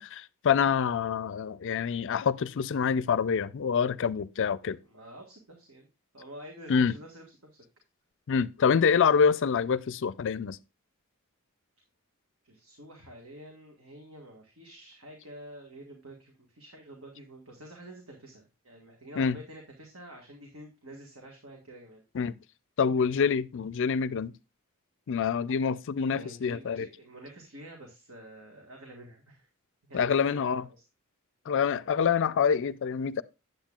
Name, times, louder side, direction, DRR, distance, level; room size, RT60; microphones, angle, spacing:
voice 1, 0.0-4.8 6.7-6.9 8.3-10.6 19.2-19.4 22.1-22.4 22.8-24.3 25.1-26.9 29.9-30.6 31.5-33.2, left 6 dB, 60° left, 0.4 m, -26 dB
voice 2, 4.7-5.9 6.1-7.6 12.4-22.0 26.0-29.5 29.9-30.8, right 1 dB, 65° right, 1.6 m, -48 dB
9.0 x 7.7 x 2.4 m
head